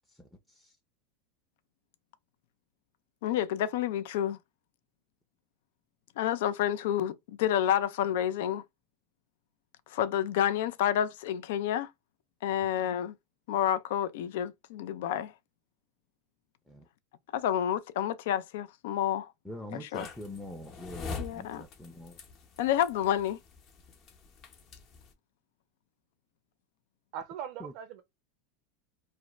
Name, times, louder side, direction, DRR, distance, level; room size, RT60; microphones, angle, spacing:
voice 1, 0.1-0.8 16.7-16.9 19.4-22.2 27.6-27.7, left 1 dB, ahead, 0.5 m, -44 dB
voice 2, 3.2-4.4 6.2-8.6 9.9-11.9 12.4-13.1 13.5-15.3 17.3-19.3 19.7-20.1 21.2-21.6 22.6-23.4, left 10 dB, 75° left, 0.3 m, -29 dB
sound 1, 19.9-25.1, left 4 dB, 40° left, 0.8 m, -44 dB
voice 3, 27.1-28.0, right 9 dB, 55° right, 0.4 m, -40 dB
2.5 x 2.1 x 2.9 m
supercardioid pair, 125°, 0 cm